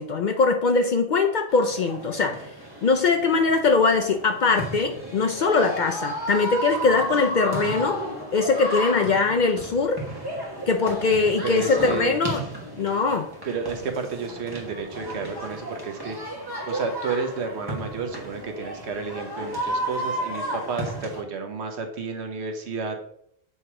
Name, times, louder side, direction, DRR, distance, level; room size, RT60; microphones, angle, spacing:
voice 1, 0.0-2.5 2.8-8.0 8.3-10.0 10.7-12.4 12.8-13.3, left 4 dB, 55° left, 5 dB, 0.5 m, -22 dB
sound 1, 1.5-21.2, right 1 dB, 20° right, 1.3 m, -33 dB
voice 2, 11.4-12.2 13.4-16.2 16.7-23.0, right 4 dB, 75° right, 5 dB, 1.2 m, -31 dB
6.9 x 3.0 x 4.7 m, 0.70 s
omnidirectional pair, 1.1 m